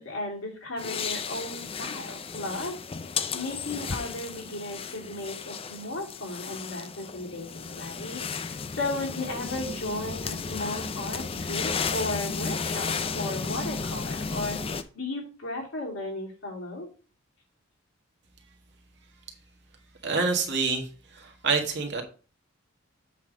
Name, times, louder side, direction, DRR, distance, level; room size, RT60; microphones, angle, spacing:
voice 1, 0.0-16.9, left 2 dB, 70° left, -2 dB, 2.7 m, -35 dB
sound 1, 0.8-14.8, left 5 dB, 25° left, 0.4 m, -34 dB
voice 2, 20.0-20.9 21.1-22.0, right 4 dB, 55° right, 4 dB, 1.7 m, -27 dB
8.3 x 3.5 x 6.2 m, 0.36 s
head